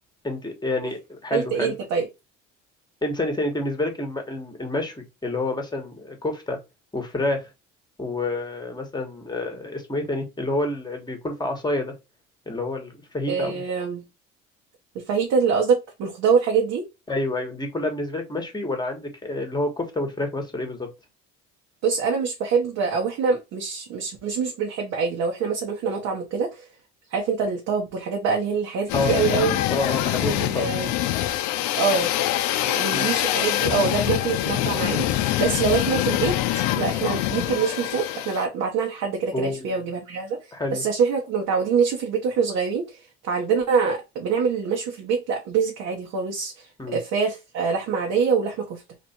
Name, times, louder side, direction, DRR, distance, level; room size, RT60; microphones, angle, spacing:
voice 1, 0.2-1.7 3.0-6.6 6.9-7.5 8.0-12.0 12.5-13.6 17.1-20.9 28.9-29.1 29.7-30.3 30.5-30.7 32.9-33.1 39.3-39.7 40.5-40.8 46.8-47.0, left 2 dB, 15° left, 1.2 m, -28 dB
voice 2, 1.3-2.1 13.3-14.0 14.9-16.9 21.8-26.7 27.1-29.6 30.2-30.9 31.8-32.1 32.7-35.1 35.4-48.8, right 5 dB, 65° right, 1.0 m, -25 dB
sound 1, 28.9-38.5, left 13 dB, 75° left, 0.6 m, -24 dB
3.1 x 2.5 x 4.2 m
supercardioid pair, 90°, 30 cm